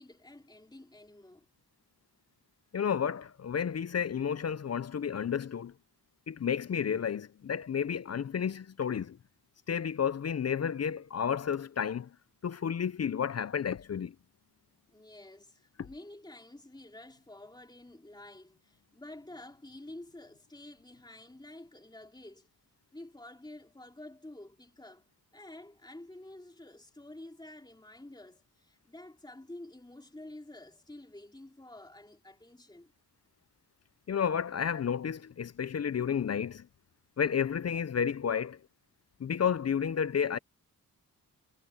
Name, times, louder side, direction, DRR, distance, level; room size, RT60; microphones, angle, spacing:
voice 1, 0.0-1.4 14.9-22.5 22.9-25.1 25.3-32.9, left 1 dB, 10° left, 3.4 m, -50 dB
voice 2, 2.7-5.7 6.3-9.2 9.7-12.1 12.4-14.1 15.8-15.9 34.1-36.7 37.2-38.6 39.2-40.4, left 7 dB, 45° left, 0.5 m, -31 dB
wide cardioid pair, 125°, 38 cm